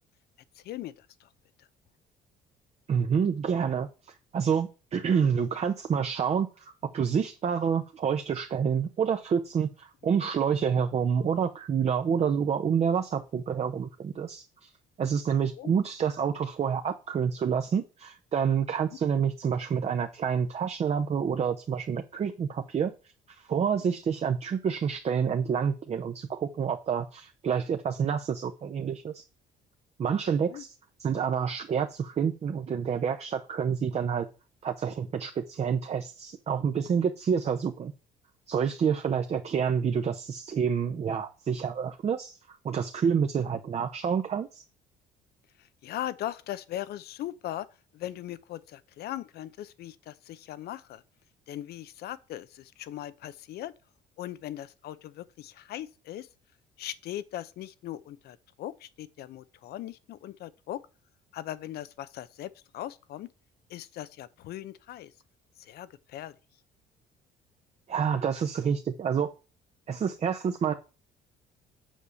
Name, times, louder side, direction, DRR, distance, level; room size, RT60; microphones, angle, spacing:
voice 1, 0.5-1.3 1.6-1.7 15.6-15.7 30.5-30.6 45.6-47.7 47.9-51.0 51.5-53.7 54.2-56.3 56.8-60.8 61.3-63.3 63.7-65.1 65.6-66.3, left 13 dB, 70° left, 0.7 m, -39 dB
voice 2, 2.9-3.9 4.3-14.7 15.0-22.9 23.3-29.2 30.0-30.7 31.0-34.3 34.6-37.9 38.5-44.6 67.9-69.3 69.9-70.7, right 7 dB, 40° right, 0.8 m, -28 dB
7.3 x 4.9 x 6.9 m
cardioid pair, 110°, 17 cm